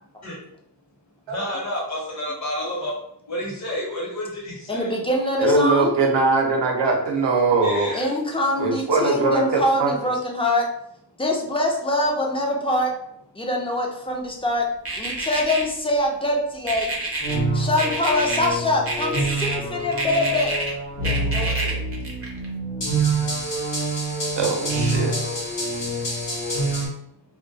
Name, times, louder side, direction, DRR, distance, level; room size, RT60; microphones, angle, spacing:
voice 1, 1.3-3.0 3.3-5.0 7.6-8.1, equal, 40° left, -4 dB, 0.9 m, -30 dB
voice 2, 4.7-5.9 7.9-10.6 11.2-12.9 13.4-14.6 15.0-16.9 17.5-20.6 21.0-21.8, left 1 dB, 15° left, -1 dB, 0.4 m, -24 dB
voice 3, 5.4-7.9 8.6-9.9 24.4-25.1, right 3 dB, 75° right, 1 dB, 0.7 m, -21 dB
sound 1, 14.9-15.6 16.7-17.4 17.8-18.5 18.9-19.6 19.9-20.7 21.0-22.5, right 2 dB, 35° right, 0.6 m, -28 dB
sound 2, 17.2-26.9, right 2 dB, 80° left, 0.8 m, -26 dB
2.2 x 2.1 x 2.6 m, 0.74 s
wide cardioid pair, 90°, 43 cm